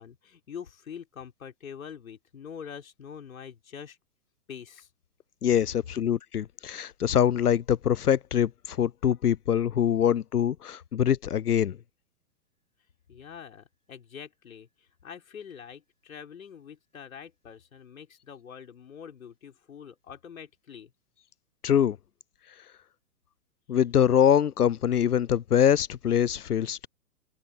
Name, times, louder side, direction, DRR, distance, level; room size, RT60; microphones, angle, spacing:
voice 1, 0.0-4.0 4.5-4.9 13.1-14.7 15.0-20.9, left 7 dB, 60° left, 4.0 m, -44 dB
voice 2, 5.4-11.8 21.6-22.0 23.7-26.9, left 9 dB, 80° left, 0.6 m, -24 dB
figure-of-eight pair, 115°, 45 cm